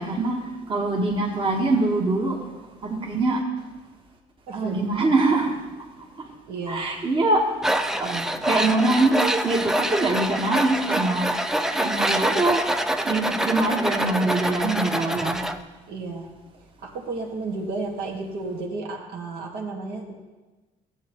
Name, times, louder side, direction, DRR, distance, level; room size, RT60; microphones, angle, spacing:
voice 1, 0.0-2.4 2.8-3.4 4.5-5.6 6.7-7.5 7.8-8.1 8.4-11.3 11.8-12.7 13.0-15.4, right 2 dB, 30° right, 0 dB, 1.4 m, -23 dB
voice 2, 4.5-5.2 6.5-6.9 8.0-8.4 15.9-20.1, right 3 dB, 70° right, 0 dB, 1.7 m, -33 dB
Tools, 7.6-15.6, right 1 dB, 5° right, 0.4 m, -25 dB
15.0 x 7.9 x 3.0 m, 1.2 s
cardioid pair, 110°, 17 cm